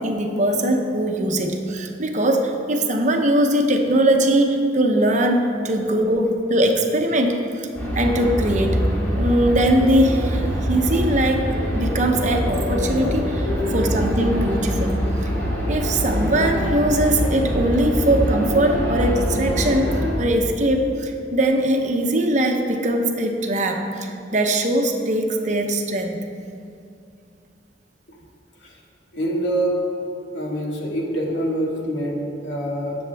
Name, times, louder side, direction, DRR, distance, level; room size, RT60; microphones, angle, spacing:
voice 1, 0.0-7.7 7.9-8.9 9.2-15.3 15.7-26.2, right 1 dB, 40° right, 3 dB, 0.9 m, -21 dB
sound 1, 7.7-20.1, equal, 10° left, 3.0 m, -24 dB
voice 2, 29.1-29.8 30.3-33.0, right 1 dB, 80° left, -2 dB, 2.1 m, -25 dB
18.0 x 7.1 x 3.5 m, 2.5 s
head